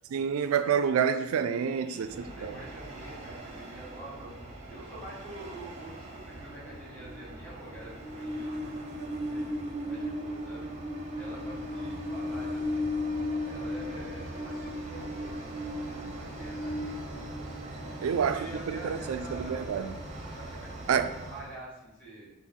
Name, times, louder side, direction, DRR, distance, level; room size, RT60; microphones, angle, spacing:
voice 1, 0.1-2.5 18.0-19.9 20.9-21.1, right 7 dB, 75° right, 0.3 m, -28 dB
voice 2, 1.7-4.4 4.7-10.6 11.1-12.9 13.4-17.0 17.9-20.7 21.2-22.3, right 1 dB, 5° left, 1.3 m, -47 dB
Train, 2.0-21.5, equal, 30° right, 0.6 m, -37 dB
6.0 x 2.1 x 3.7 m
head